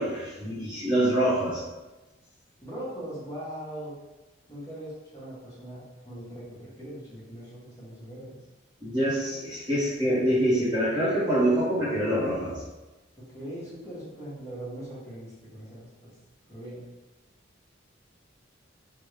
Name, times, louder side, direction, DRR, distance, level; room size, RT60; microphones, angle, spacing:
voice 1, 0.0-1.6 8.8-12.6, right 1 dB, 20° right, -8 dB, 0.8 m, -25 dB
voice 2, 2.6-3.9 4.5-8.4 13.2-16.1 16.5-16.8, right 1 dB, 15° left, -9 dB, 0.9 m, -40 dB
3.4 x 2.1 x 3.1 m, 1.1 s
head